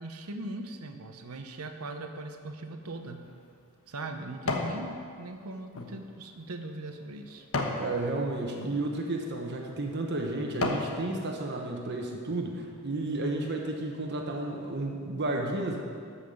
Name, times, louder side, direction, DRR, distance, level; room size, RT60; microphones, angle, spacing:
voice 1, 0.0-3.2 3.9-7.5, right 2 dB, 80° right, 5 dB, 0.9 m, -40 dB
sound 1, 2.9-4.8 5.3-7.9 8.5-8.7 9.4-9.6 10.1-10.9 11.4-11.5, left 3 dB, 70° left, 1.2 m, -35 dB
voice 2, 7.8-15.8, right 2 dB, 50° right, 1 dB, 1.2 m, -32 dB
13.0 x 5.8 x 7.1 m, 2.2 s
head